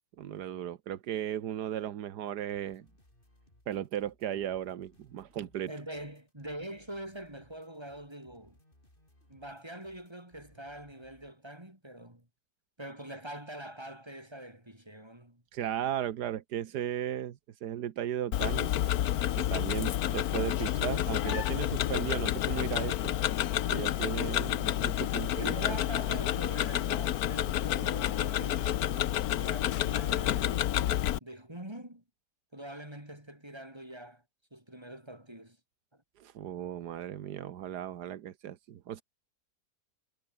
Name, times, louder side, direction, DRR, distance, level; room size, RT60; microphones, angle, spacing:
voice 1, 0.2-2.9 3.7-5.7 15.5-18.7 19.3-23.1 23.7-25.8 36.2-39.0, right 10 dB, 85° right, 1.6 m, -36 dB
sound 1, 2.3-11.3, left 1 dB, 30° left, 7.9 m, -65 dB
voice 2, 5.7-8.6 9.3-12.3 12.8-15.4 25.2-30.7 31.2-32.0 32.5-34.2 34.5-35.6 35.9-36.0, right 1 dB, 15° right, 5.6 m, -44 dB
Tick-tock, 18.3-31.2, left 12 dB, 70° left, 1.2 m, -29 dB
omnidirectional pair, 1.7 m